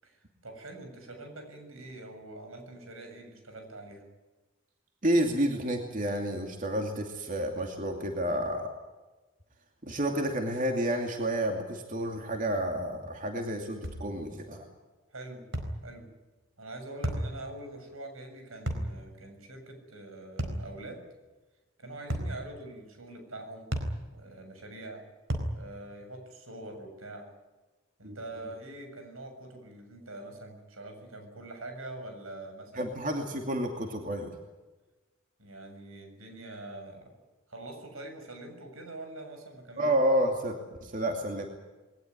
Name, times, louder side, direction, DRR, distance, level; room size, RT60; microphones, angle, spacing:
voice 1, 0.0-4.0 15.1-15.4 15.8-16.1 16.6-21.0 21.8-23.7 24.1-25.1 25.5-27.3 28.0-32.8 35.4-37.2 37.5-39.9, right 2 dB, 90° right, 5 dB, 7.2 m, -44 dB
voice 2, 5.0-8.7 9.8-14.7 28.0-28.2 32.8-34.3 39.8-41.5, right 1 dB, 40° right, 3 dB, 2.7 m, -30 dB
sound 1, 13.8-14.1 15.5-15.8 17.0-17.3 18.7-18.9 20.4-20.6 22.1-22.3 23.7-24.0 25.3-25.5, equal, 65° right, 4.4 m, -31 dB
21.5 x 19.5 x 9.7 m, 1.2 s
head